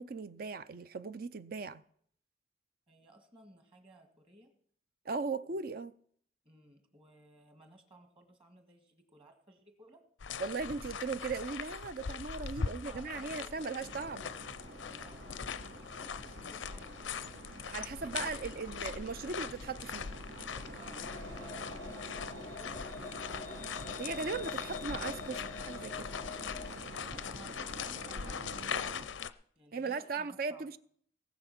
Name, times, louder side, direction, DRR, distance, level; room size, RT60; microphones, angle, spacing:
voice 1, 0.0-1.8 5.1-5.9 10.4-14.3 17.7-20.1 24.0-26.1 29.7-30.8, right 4 dB, 50° right, 0.5 m, -38 dB
voice 2, 2.9-4.5 5.5-5.6 6.4-10.0 12.6-14.0 14.8-17.2 17.6-18.9 20.8-24.0 27.1-29.3 29.6-30.7, right 1 dB, 30° right, 1.8 m, -58 dB
sound 1, 10.2-29.3, left 6 dB, 85° left, 0.6 m, -41 dB
sound 2, 13.8-29.1, right 2 dB, 70° right, 1.6 m, -48 dB
sound 3, 21.0-26.7, left 5 dB, 40° left, 0.4 m, -47 dB
18.5 x 7.0 x 5.9 m
head